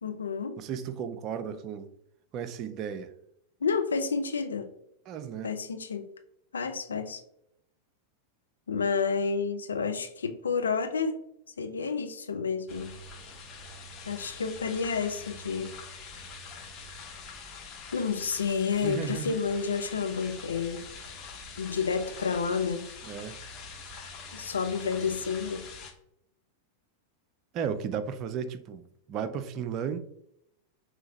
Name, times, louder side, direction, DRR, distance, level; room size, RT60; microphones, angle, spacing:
voice 1, 0.0-0.6 3.6-4.7 5.4-6.1 6.5-7.2 8.7-11.2 11.6-13.0 14.1-15.7 17.9-20.8 21.6-22.9 24.3-25.6, left 5 dB, 70° left, 0.5 m, -30 dB
voice 2, 0.6-1.9 2.3-3.1 5.1-5.5 18.8-19.4 23.0-23.4 27.5-30.0, right 7 dB, 35° right, 0.4 m, -34 dB
sound 1, 12.7-25.9, left 4 dB, 30° left, 0.9 m, -44 dB
5.5 x 3.0 x 2.8 m
figure-of-eight pair, 90°, 0 cm